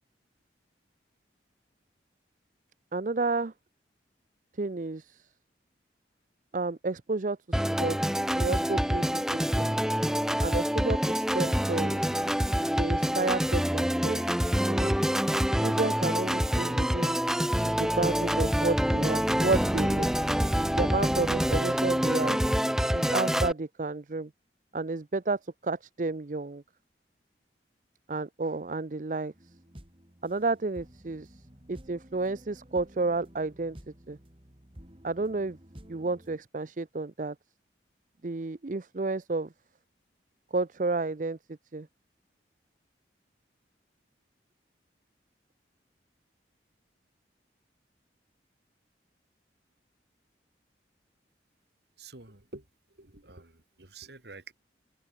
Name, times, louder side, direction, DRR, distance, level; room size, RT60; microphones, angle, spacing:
voice 1, 2.9-3.5 4.6-5.2 6.5-8.0 8.4-9.7 10.4-12.0 12.8-14.2 14.7-14.9 15.6-17.2 17.8-20.1 20.7-22.4 22.9-24.3 24.7-26.6 28.1-29.3 30.2-31.3 31.7-33.8 34.1-34.2 35.0-35.6 35.9-37.3 38.2-39.5 40.5-41.4 41.7-41.9, right 3 dB, 45° right, 0.6 m, -31 dB
Organ, 7.5-23.5, equal, 5° right, 0.7 m, -26 dB
sound 1, 29.3-36.4, equal, 30° right, 2.6 m, -52 dB
voice 2, 52.0-52.6 53.0-54.5, right 3 dB, 65° right, 2.8 m, -48 dB
head